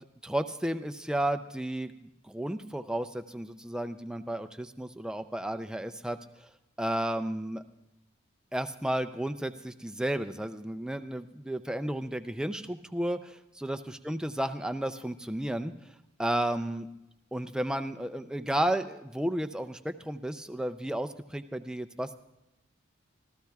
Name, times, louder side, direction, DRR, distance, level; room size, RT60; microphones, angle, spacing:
voice 1, 0.2-6.2 6.8-7.6 8.5-13.8 14.0-15.7 16.2-16.9 17.3-22.1, right 1 dB, 5° right, 9 dB, 0.4 m, -32 dB
26.5 x 14.0 x 2.3 m, 0.91 s
head